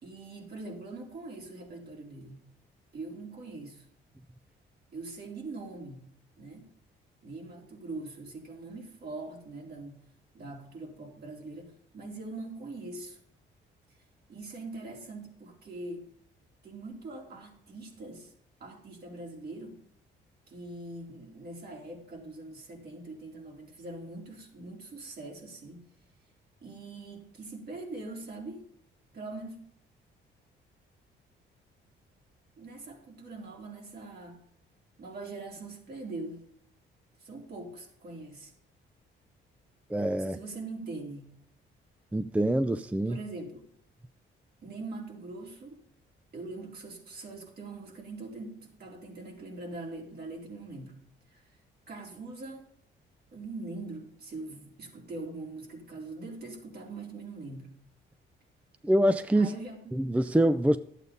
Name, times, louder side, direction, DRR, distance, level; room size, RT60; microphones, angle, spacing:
voice 1, 0.0-2.4 2.9-3.8 4.9-6.1 6.4-6.7 7.2-10.0 10.3-13.2 14.3-16.1 16.6-18.3 18.6-19.8 20.5-25.9 26.6-28.7 29.1-29.6 32.6-34.4 35.0-36.4 37.2-38.5 40.2-41.3 43.1-43.6 44.6-45.8 46.3-51.0 51.3-51.6 51.9-52.7 53.3-57.7 59.3-60.0, right 2 dB, 55° right, 3.9 m, -42 dB
voice 2, 39.9-40.4 42.1-43.2 58.8-59.5 59.9-60.8, right 1 dB, 5° right, 0.5 m, -25 dB
12.0 x 8.3 x 5.2 m
cardioid pair, 90°, 20 cm